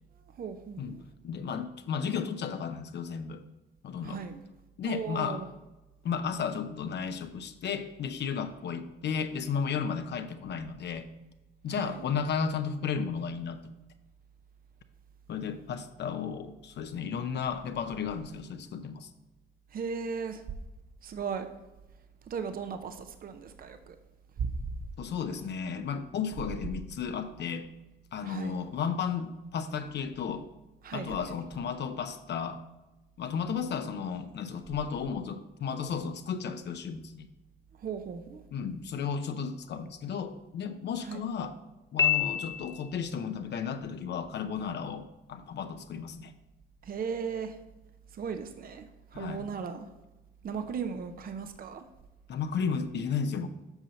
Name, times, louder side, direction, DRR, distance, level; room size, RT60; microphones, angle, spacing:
voice 1, 0.3-1.0 4.0-4.4 4.8-5.5 11.7-12.1 19.7-20.4 21.0-21.5 22.3-24.0 24.4-24.5 28.2-28.6 30.8-31.2 37.8-38.4 41.0-41.2 46.8-47.6 48.1-48.9 49.1-49.9 50.4-51.9, right 6 dB, 45° right, 8 dB, 0.7 m, -36 dB
voice 2, 1.2-3.4 3.8-4.2 4.8-5.4 6.0-11.1 11.6-13.7 15.3-19.1 25.0-27.7 28.1-30.5 30.9-32.6 33.2-37.3 38.5-41.5 41.9-46.3 49.1-49.5 52.3-53.5, left 6 dB, 60° left, 8 dB, 0.7 m, -34 dB
Piano, 42.0-43.1, left 9 dB, 20° left, 0.8 m, -27 dB
8.0 x 5.5 x 4.3 m, 1.0 s
cardioid pair, 90°, 20 cm